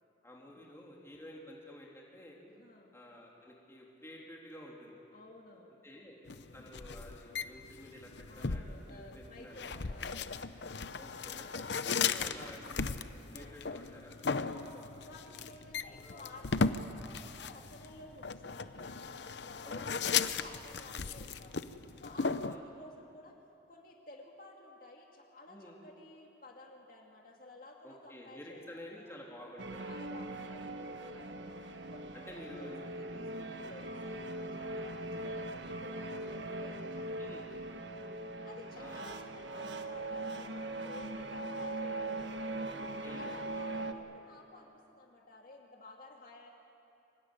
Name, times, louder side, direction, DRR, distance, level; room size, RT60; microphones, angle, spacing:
voice 1, 0.2-2.4 2.9-5.0 5.8-9.8 11.0-14.1 16.0-16.2 19.6-21.2 22.4-22.6 25.5-25.8 27.8-29.8 31.2-31.5 32.3-32.8 33.6-33.8 36.2-36.4 37.2-37.4 38.8-39.0 42.7-43.9, left 1 dB, 15° left, -2 dB, 3.2 m, -51 dB
voice 2, 2.5-2.9 5.1-5.9 6.4-6.8 8.3-11.0 13.2-13.5 14.4-21.6 22.0-23.4 23.7-29.1 29.8-31.3 31.9-38.1 38.4-42.7 43.1-46.5, left 2 dB, 50° left, 0 dB, 2.4 m, -54 dB
sound 1, 6.3-22.6, left 5 dB, 65° left, 0.8 m, -37 dB
sound 2, 29.6-43.9, right 2 dB, 75° right, 1.4 m, -40 dB
25.0 x 18.0 x 9.9 m, 2.8 s
head